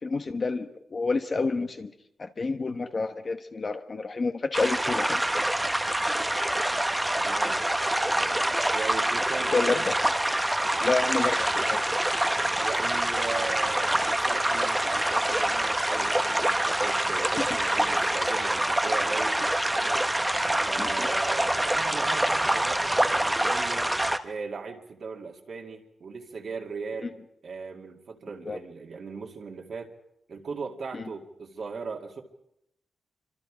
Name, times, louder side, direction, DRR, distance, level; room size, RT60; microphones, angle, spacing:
voice 1, 0.0-1.9 2.2-5.2 9.5-10.0 10.8-11.8 17.4-17.5 20.8-21.1 27.0-27.1 28.5-28.6 30.9-31.0, left 3 dB, 30° left, 7 dB, 1.0 m, -29 dB
sound 1, 4.5-24.2, right 1 dB, 10° right, 1.0 m, -26 dB
voice 2, 7.2-7.6 8.0-8.4 8.7-9.8 12.6-19.4 19.7-20.1 20.6-23.9 24.2-27.1 27.4-29.9 30.3-32.2, right 4 dB, 50° right, 1 dB, 2.3 m, -38 dB
27.0 x 25.5 x 5.1 m, 0.79 s
wide cardioid pair, 155°, 0 cm